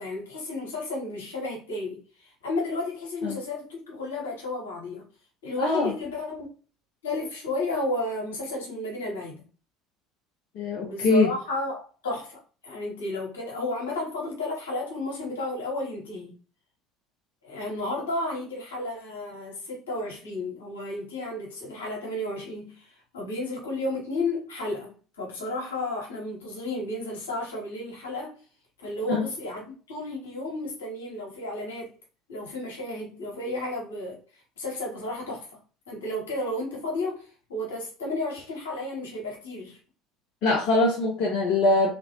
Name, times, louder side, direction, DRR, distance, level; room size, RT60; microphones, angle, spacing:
voice 1, 0.0-5.0 5.4-6.5 7.0-9.4 10.8-16.3 17.4-28.4 28.8-29.6 29.9-31.9 32.3-34.2 34.6-35.5 35.9-39.8, left 2 dB, 70° left, 1.4 m, -32 dB
voice 2, 5.6-5.9 10.6-11.3 29.1-29.2 40.4-41.9, left 2 dB, 50° left, 0.8 m, -22 dB
3.4 x 3.0 x 2.9 m
figure-of-eight pair, 60°, 0 cm